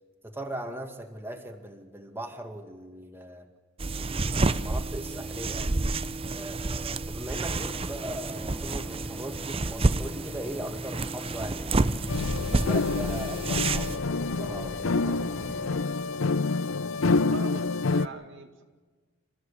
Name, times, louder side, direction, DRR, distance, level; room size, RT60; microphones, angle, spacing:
voice 1, 0.2-3.5 4.0-5.7 6.3-12.0 12.4-15.5, right 1 dB, 10° right, 4 dB, 2.2 m, -39 dB
sound 1, 3.8-14.0, right 2 dB, 30° right, 0.7 m, -29 dB
sound 2, 7.4-15.8, equal, 5° left, 0.9 m, -43 dB
sound 3, 12.1-18.1, left 3 dB, 85° left, 0.6 m, -27 dB
voice 2, 17.1-18.6, right 3 dB, 65° right, 5 dB, 2.3 m, -42 dB
27.0 x 15.0 x 8.6 m, 1.4 s
head